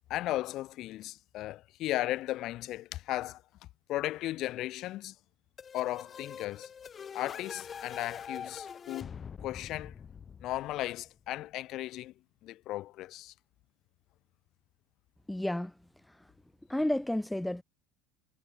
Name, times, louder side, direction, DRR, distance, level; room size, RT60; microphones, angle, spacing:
voice 1, 0.1-3.4 3.9-5.1 5.7-6.7 7.1-9.1 9.4-9.9 10.4-12.1 12.4-13.3, left 15 dB, 45° left, 4.1 m, -36 dB
sound 1, 5.6-11.2, left 7 dB, 30° left, 4.6 m, -44 dB
voice 2, 15.3-15.7 16.7-17.6, left 1 dB, 5° left, 1.4 m, -31 dB
figure-of-eight pair, 70°, 0 cm